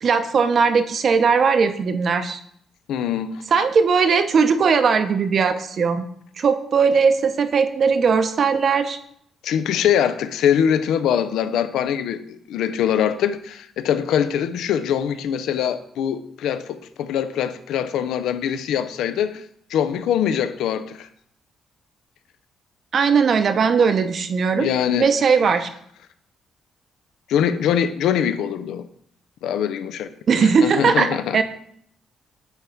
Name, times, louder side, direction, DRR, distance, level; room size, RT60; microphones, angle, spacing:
voice 1, 0.0-2.4 3.5-6.1 6.4-9.0 22.9-24.7 25.0-25.7 30.3-31.4, right 5 dB, 50° right, 0.6 m, -19 dB
voice 2, 2.9-3.4 9.4-19.4 19.7-21.1 24.5-25.1 27.3-28.9 29.4-30.1 30.4-31.4, left 9 dB, 85° left, 0.4 m, -23 dB
9.0 x 3.5 x 4.4 m
cardioid pair, 105°, 0 cm